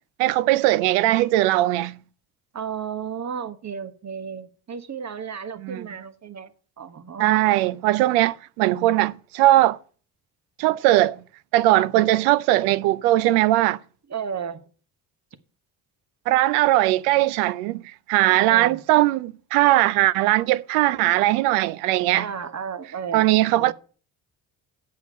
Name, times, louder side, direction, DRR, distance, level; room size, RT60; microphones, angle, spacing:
voice 1, 0.2-2.0 5.6-5.9 7.2-9.8 10.6-11.2 11.5-13.8 16.3-17.8 18.1-22.3 23.1-23.7, right 16 dB, 85° right, 0.6 m, -19 dB
voice 2, 2.5-6.5 6.8-7.5 14.1-14.7 18.5-18.8 22.1-23.3 23.5-23.7, right 7 dB, 35° right, 1.4 m, -33 dB
8.2 x 6.6 x 7.1 m
hypercardioid pair, 60°, 45 cm